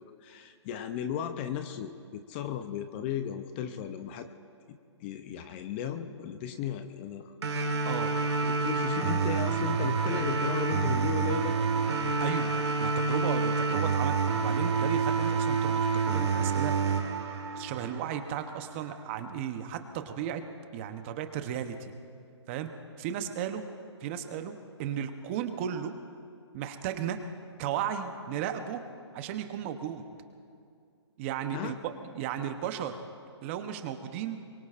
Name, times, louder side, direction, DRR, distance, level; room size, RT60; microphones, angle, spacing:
voice 1, 0.0-4.3 4.7-7.3 8.4-11.6 31.5-31.8, left 9 dB, 25° left, 9 dB, 0.5 m, -35 dB
sound 1, 7.4-18.4, right 4 dB, 65° right, 1.8 m, -28 dB
voice 2, 12.2-12.5 12.8-16.7 17.6-20.4 20.7-21.9 22.5-22.7 23.0-23.7 24.0-25.9 26.5-27.2 27.6-28.8 29.1-30.0 31.2-33.0 33.4-34.4, right 9 dB, 25° right, 8 dB, 0.8 m, -35 dB
24.5 x 23.0 x 2.5 m, 2.4 s
hypercardioid pair, 150°, 15 cm